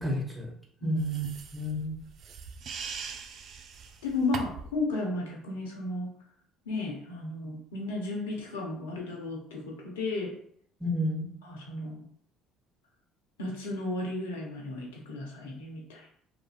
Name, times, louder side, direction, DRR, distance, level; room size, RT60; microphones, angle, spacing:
voice 1, 0.0-0.5 0.8-2.0 10.8-11.3, equal, 15° right, -2 dB, 1.0 m, -31 dB
sound 1, 1.0-4.8, right 6 dB, 55° right, 0.3 m, -41 dB
voice 2, 4.0-6.1 6.7-10.3 11.4-12.0 13.4-16.2, left 2 dB, 80° left, -1 dB, 0.7 m, -34 dB
2.9 x 2.5 x 2.3 m, 0.64 s
hypercardioid pair, 60°, 0 cm